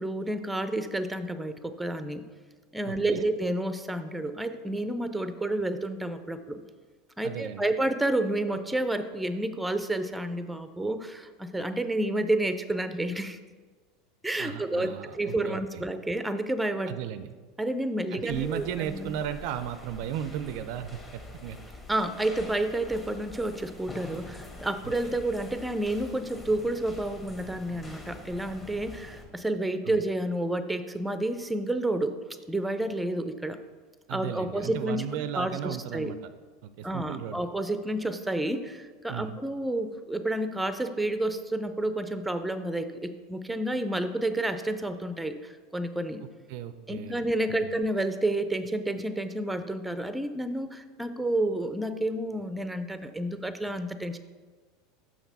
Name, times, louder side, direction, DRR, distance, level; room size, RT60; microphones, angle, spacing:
voice 1, 0.0-2.2 2.7-6.6 7.2-13.4 14.2-16.9 17.6-19.2 21.9-32.2 32.5-33.6 34.1-36.1 36.8-46.2 46.9-54.2, right 1 dB, 5° right, 10 dB, 0.5 m, -30 dB
voice 2, 2.9-3.3 7.2-7.7 14.4-15.8 16.9-17.3 18.1-21.6 24.8-25.2 29.8-30.0 34.1-36.2 36.6-37.5 39.1-39.4 46.5-47.2 47.6-47.8, right 10 dB, 60° right, 11 dB, 0.4 m, -35 dB
sound 1, 18.3-29.3, left 2 dB, 20° left, 1.4 m, -45 dB
6.0 x 5.9 x 4.0 m, 1.4 s
hypercardioid pair, 80°, 0 cm